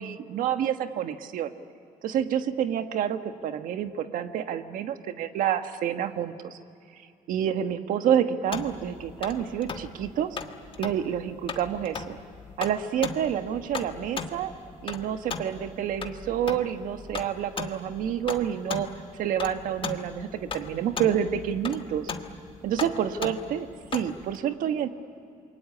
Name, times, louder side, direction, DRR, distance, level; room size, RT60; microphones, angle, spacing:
voice 1, 0.0-1.5 2.0-6.6 7.3-10.4 10.8-12.2 12.6-14.5 14.8-18.9 19.2-22.1 22.6-24.9, right 9 dB, 80° right, 8 dB, 1.4 m, -28 dB
sound 1, 8.5-24.4, left 5 dB, 40° left, 1.6 m, -38 dB
28.0 x 23.0 x 8.6 m, 2.6 s
cardioid pair, 110°, 14 cm